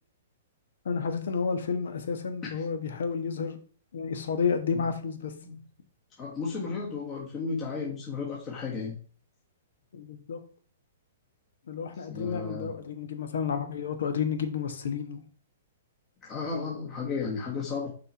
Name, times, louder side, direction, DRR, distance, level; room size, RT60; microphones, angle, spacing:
voice 1, 0.8-3.6 3.9-5.3 9.9-10.4 11.7-15.2, left 6 dB, 70° left, 1.1 m, -31 dB
voice 2, 6.2-9.0 12.0-12.7 16.2-17.9, left 4 dB, 30° left, 1.4 m, -34 dB
5.4 x 4.2 x 4.5 m
hypercardioid pair, 125°, 0 cm